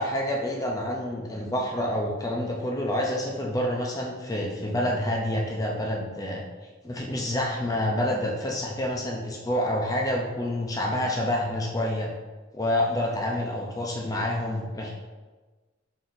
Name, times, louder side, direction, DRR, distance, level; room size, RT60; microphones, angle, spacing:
voice 1, 0.0-6.4 6.8-12.1 12.5-14.9, left 1 dB, 15° left, -1 dB, 0.4 m, -28 dB
3.9 x 3.9 x 2.5 m, 1.3 s
head